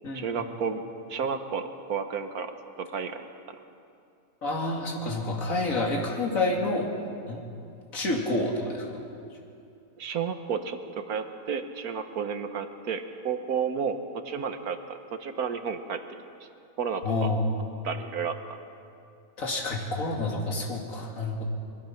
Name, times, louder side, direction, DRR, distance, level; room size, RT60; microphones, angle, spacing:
voice 1, 0.1-0.8 1.1-2.5 2.8-3.6 10.0-16.0 16.8-17.3 17.8-18.4, right 6 dB, 75° right, 8 dB, 1.6 m, -32 dB
voice 2, 4.4-6.9 7.3-7.5 7.9-9.1 17.0-17.5 19.4-21.4, left 2 dB, 60° left, -1 dB, 2.9 m, -28 dB
22.5 x 21.5 x 5.9 m, 2.5 s
omnidirectional pair, 1.6 m